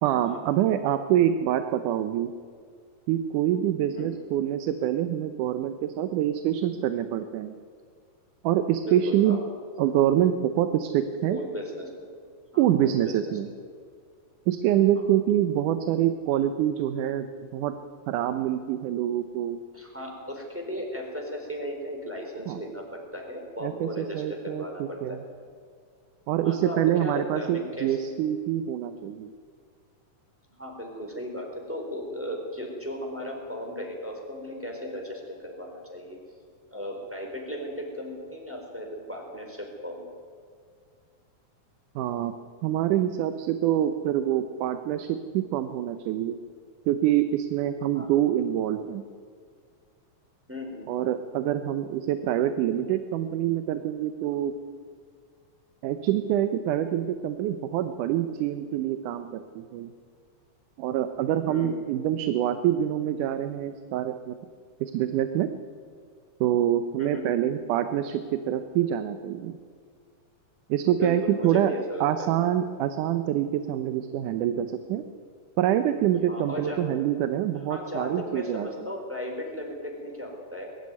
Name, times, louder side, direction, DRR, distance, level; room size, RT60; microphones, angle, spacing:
voice 1, 0.0-2.3 3.1-7.5 8.4-9.4 9.8-11.4 12.6-13.5 14.5-17.3 17.5-17.7 18.1-19.6 22.5-22.6 23.6-25.2 26.3-29.3 42.0-42.3 42.6-46.4 46.9-49.0 50.9-54.5 55.8-59.9 60.8-64.4 64.8-65.5 66.4-69.6 70.7-71.7 72.0-75.0 75.6-78.7, right 11 dB, 90° right, 9 dB, 2.3 m, -26 dB
voice 2, 8.8-9.4 11.3-12.1 12.5-13.1 13.5-13.6 15.0-15.1 19.7-25.2 26.4-28.0 30.6-36.2 36.7-40.0 47.9-48.1 50.5-51.1 61.5-61.9 67.0-67.3 71.0-72.3 76.3-76.8 77.7-80.7, equal, 5° right, 0 dB, 3.9 m, -36 dB
21.5 x 13.0 x 9.6 m, 2.1 s
omnidirectional pair, 3.5 m